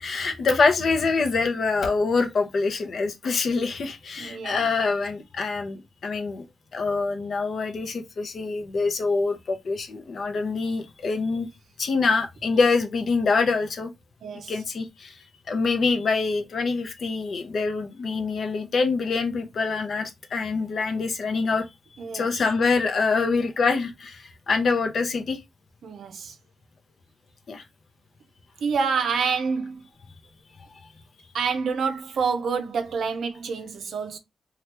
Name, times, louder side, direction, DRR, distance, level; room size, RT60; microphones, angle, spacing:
voice 1, 0.0-6.5 6.7-11.5 11.8-13.9 14.5-15.2 15.5-21.7 22.1-25.4 27.5-27.6, left 4 dB, 65° left, 0.6 m, -25 dB
voice 2, 4.2-4.7 14.2-14.5 22.0-22.3 25.8-26.4 28.6-29.8 31.3-34.2, right 5 dB, 75° right, 0.5 m, -27 dB
2.9 x 2.3 x 3.2 m
cardioid pair, 75°, 0 cm